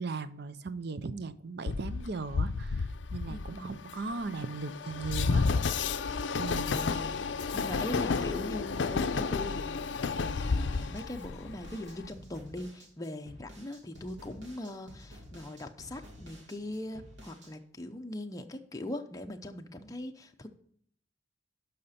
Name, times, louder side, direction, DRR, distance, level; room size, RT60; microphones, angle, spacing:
voice 1, 0.0-5.5 6.4-6.8, right 4 dB, 60° right, 13 dB, 0.6 m, -38 dB
Train, 1.7-12.1, left 4 dB, 70° left, 0.5 m, -31 dB
voice 2, 3.3-3.9 6.4-20.5, left 1 dB, 20° left, 4 dB, 0.6 m, -41 dB
sound 1, 10.3-17.5, equal, 80° right, 2.6 m, -51 dB
12.0 x 5.7 x 4.2 m, 0.62 s
head